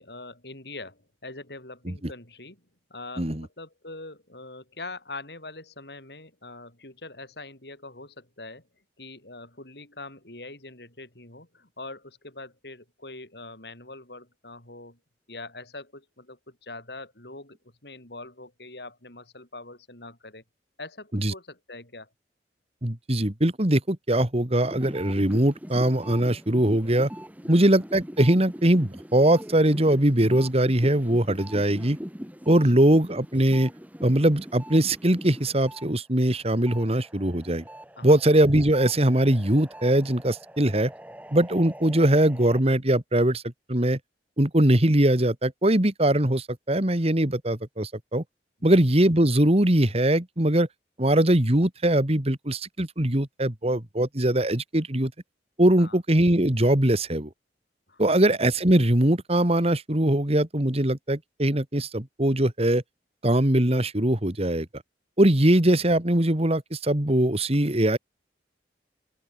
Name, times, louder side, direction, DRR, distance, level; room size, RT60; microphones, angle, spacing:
voice 1, 0.0-2.6 2.9-8.6 9.0-15.0 15.3-20.4 20.8-22.1 27.4-27.6 38.0-38.2 55.8-56.0 57.9-58.1, left 2 dB, 65° left, 6.8 m, -43 dB
voice 2, 22.8-27.1 27.5-32.0 32.5-33.7 34.0-37.6 38.0-40.9 41.3-43.4 43.7-44.0 44.4-48.2 48.6-50.7 51.0-55.1 55.6-57.3 58.0-62.8 63.2-64.7 65.2-68.0, right 1 dB, 35° right, 2.3 m, -21 dB
sound 1, 24.6-35.9 36.2-42.6, equal, 10° right, 4.0 m, -42 dB
open air
head